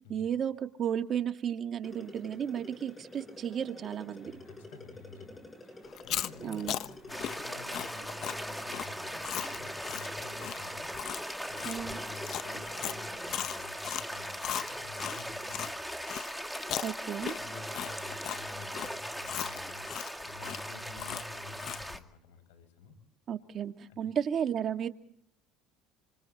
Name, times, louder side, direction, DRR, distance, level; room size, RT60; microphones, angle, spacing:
voice 1, 0.1-4.3 6.4-6.7 11.6-12.0 16.8-17.4 23.3-24.9, right 8 dB, 45° right, 7 dB, 1.9 m, -33 dB
sound 1, 1.8-13.7, left 1 dB, 15° left, 6.6 m, -49 dB
voice 2, 4.2-10.9 11.5-16.1 17.4-22.9 23.9-24.0, left 4 dB, 85° left, 9 dB, 6.9 m, -50 dB
Chewing mastication, 5.9-15.7 16.1-22.0, left 12 dB, 55° left, 1.0 m, -38 dB
sound 2, 7.1-22.0, equal, ahead, 2.2 m, -39 dB
27.5 x 27.0 x 4.2 m, 0.64 s
supercardioid pair, 95°, 0 cm